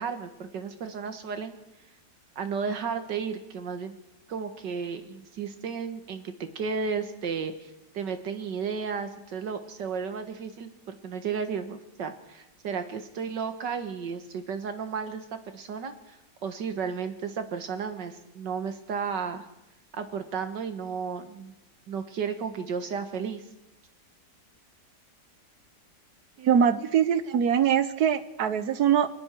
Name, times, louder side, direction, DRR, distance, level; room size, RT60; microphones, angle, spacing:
voice 1, 0.0-1.6 2.4-4.0 4.3-19.5 20.0-21.5 21.9-23.4, right 6 dB, 80° right, 8 dB, 2.2 m, -33 dB
voice 2, 26.4-29.1, right 8 dB, 65° right, 13 dB, 1.4 m, -23 dB
29.0 x 20.5 x 4.6 m, 0.93 s
omnidirectional pair, 1.9 m